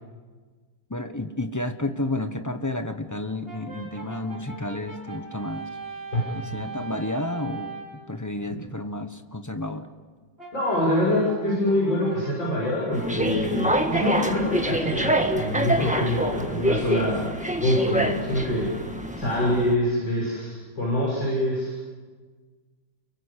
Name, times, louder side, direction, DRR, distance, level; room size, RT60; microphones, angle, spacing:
voice 1, 0.9-5.7 6.3-9.9, left 1 dB, 15° left, 7 dB, 0.8 m, -31 dB
Brass instrument, 3.5-8.0 10.4-16.7, right 4 dB, 30° right, 5.3 m, -41 dB
voice 2, 10.5-17.2 17.6-18.7 19.2-21.7, left 1 dB, 70° left, -5 dB, 7.6 m, -25 dB
sound 1, 12.9-19.7, right 1 dB, 5° right, 1.3 m, -26 dB
30.0 x 23.0 x 8.3 m, 1.5 s
omnidirectional pair, 2.1 m